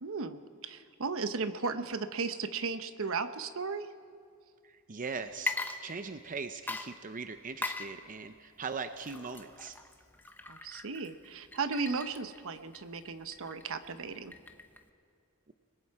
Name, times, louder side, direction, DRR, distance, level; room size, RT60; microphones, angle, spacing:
voice 1, 0.0-3.9 10.5-14.3, right 4 dB, 65° right, 10 dB, 0.9 m, -35 dB
voice 2, 4.6-5.6 5.8-9.8, right 5 dB, 40° right, 9 dB, 0.7 m, -40 dB
Water / Liquid, 5.3-6.3 6.7-14.9, left 3 dB, 10° left, 0.9 m, -41 dB
29.5 x 20.5 x 4.8 m, 2.3 s
head